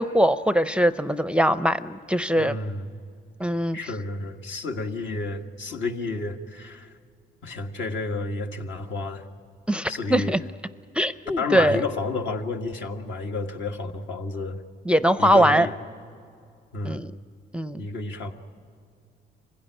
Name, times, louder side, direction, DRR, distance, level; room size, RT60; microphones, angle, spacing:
voice 1, 0.0-2.6 3.4-3.8 9.7-10.4 11.0-11.8 14.9-15.7 16.8-17.1 17.5-17.8, equal, 5° right, 12 dB, 0.5 m, -21 dB
voice 2, 2.3-2.9 3.7-6.9 7.4-9.3 9.9-10.4 11.4-14.6 15.2-15.7 16.7-17.1 17.8-18.3, left 3 dB, 70° left, 3 dB, 1.8 m, -31 dB
25.5 x 16.5 x 10.0 m, 2.3 s
cardioid pair, 90°, 20 cm